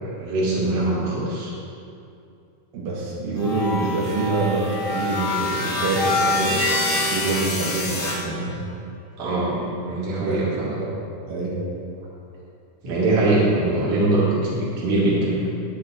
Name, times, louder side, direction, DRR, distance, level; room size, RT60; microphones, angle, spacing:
voice 1, 0.0-1.5 9.2-10.7 12.8-15.4, right 2 dB, 50° right, -6 dB, 2.9 m, -22 dB
voice 2, 2.7-6.5 7.1-8.6 9.6-9.7 10.2-11.0 11.3-11.6, right 2 dB, 85° right, -5 dB, 3.3 m, -26 dB
sound 1, 3.4-8.2, left 2 dB, 60° left, 2.7 m, -25 dB
9.7 x 8.4 x 4.4 m, 2.5 s
omnidirectional pair, 3.8 m